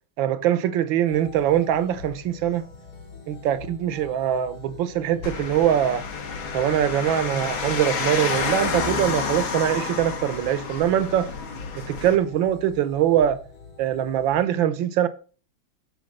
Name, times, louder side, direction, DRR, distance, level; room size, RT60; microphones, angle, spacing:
voice 1, 0.2-2.6 3.3-6.0 6.5-11.3 11.9-13.4 13.8-15.1, right 10 dB, 75° right, 1.5 m, -23 dB
sound 1, 1.0-14.4, left 4 dB, 90° left, 3.1 m, -43 dB
sound 2, 5.2-12.2, left 5 dB, 70° left, 2.1 m, -29 dB
6.4 x 5.0 x 6.4 m
omnidirectional pair, 2.2 m